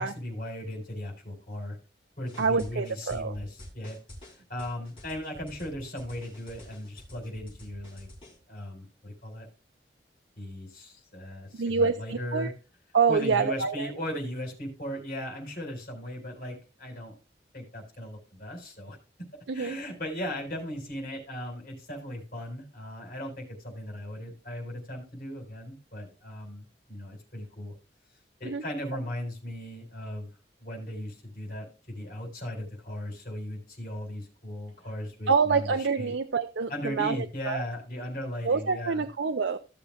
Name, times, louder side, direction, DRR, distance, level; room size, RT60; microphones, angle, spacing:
voice 1, 0.0-1.8 2.2-4.0 4.3-8.1 8.5-9.5 10.4-12.5 13.1-17.1 17.5-19.0 19.5-27.7 28.4-30.3 30.6-36.1 36.7-39.1, left 1 dB, 50° left, 1 dB, 4.3 m, -37 dB
sound 1, 2.3-8.4, left 1 dB, 30° left, 4.2 m, -48 dB
voice 2, 2.4-3.3 11.6-12.5 12.9-13.9 19.5-19.8 28.4-28.6 35.3-37.6 38.4-39.6, right 5 dB, 90° right, 8 dB, 0.6 m, -26 dB
16.0 x 7.0 x 2.4 m, 0.32 s
head